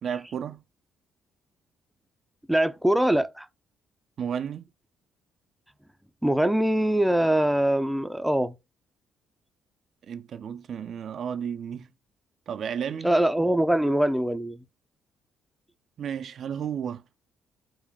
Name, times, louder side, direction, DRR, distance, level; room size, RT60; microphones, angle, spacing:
voice 1, 0.0-0.6 4.2-4.6 10.1-11.9 12.5-13.1 16.0-17.0, right 8 dB, 60° right, 0.4 m, -32 dB
voice 2, 2.5-3.5 6.2-8.5 13.0-14.6, right 1 dB, 5° right, 0.5 m, -23 dB
3.8 x 2.2 x 3.5 m
hypercardioid pair, 55°, 0 cm